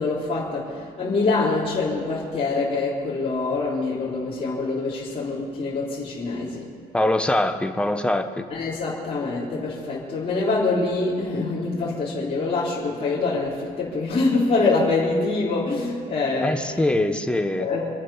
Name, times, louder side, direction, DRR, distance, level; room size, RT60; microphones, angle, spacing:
voice 1, 0.0-6.7 8.5-16.8 17.6-17.9, left 3 dB, 35° left, -7 dB, 3.8 m, -25 dB
voice 2, 6.9-8.4 16.4-17.7, left 1 dB, 5° left, 7 dB, 1.1 m, -23 dB
26.5 x 9.1 x 5.7 m, 2.3 s
cardioid pair, 110°, 17 cm